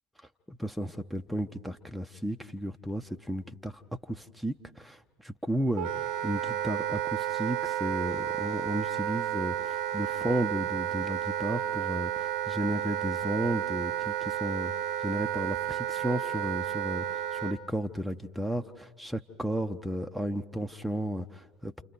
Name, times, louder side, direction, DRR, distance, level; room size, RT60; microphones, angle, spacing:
voice 1, 0.5-14.7 15.0-21.8, equal, ahead, 5 dB, 0.8 m, -33 dB
Wind instrument woodwind instrument, 5.7-17.6, right 11 dB, 50° right, 0.9 m, -32 dB
29.0 x 28.0 x 4.6 m, 1.4 s
figure-of-eight pair, 70°, 0 cm